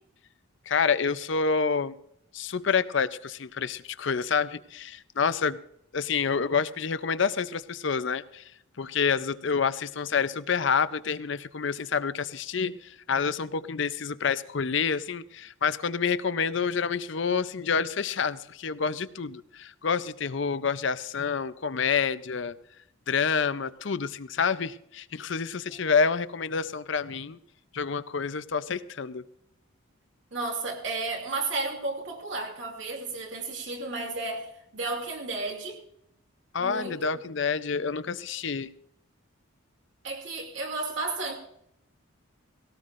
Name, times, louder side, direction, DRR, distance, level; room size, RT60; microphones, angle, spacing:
voice 1, 0.7-1.9 2.3-5.6 5.9-8.4 8.8-22.6 23.1-27.4 27.7-29.2 36.5-38.7, left 5 dB, 60° left, 0.6 m, -28 dB
voice 2, 30.3-35.8 36.6-37.1 40.0-41.4, right 3 dB, 60° right, 2.8 m, -33 dB
19.5 x 17.5 x 2.5 m
head